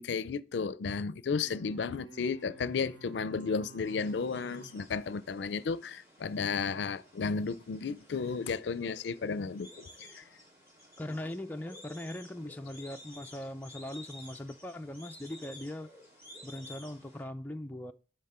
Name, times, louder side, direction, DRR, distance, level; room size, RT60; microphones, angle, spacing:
voice 1, 0.0-10.2, left 5 dB, 75° left, 0.4 m, -33 dB
sound 1, 1.3-5.8, right 4 dB, 80° right, 1.2 m, -53 dB
sound 2, 3.8-17.2, left 1 dB, 15° right, 2.8 m, -54 dB
voice 2, 11.0-15.9 16.4-17.9, left 1 dB, 10° left, 0.4 m, -40 dB
10.5 x 4.0 x 4.3 m
head